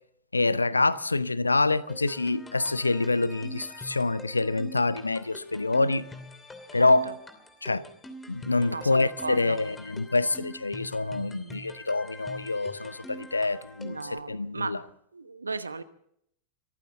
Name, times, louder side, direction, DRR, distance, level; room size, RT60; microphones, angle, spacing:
voice 1, 0.3-6.1 6.7-7.1 7.6-7.8 8.3-14.8, left 3 dB, 80° left, 0.6 m, -26 dB
sound 1, 1.9-14.2, left 1 dB, 15° left, 2.8 m, -45 dB
voice 2, 6.8-7.1 8.7-9.6 11.3-11.6 13.8-14.8 15.1-15.8, right 4 dB, 80° right, 1.0 m, -36 dB
24.5 x 15.0 x 3.9 m
figure-of-eight pair, 90°, 0 cm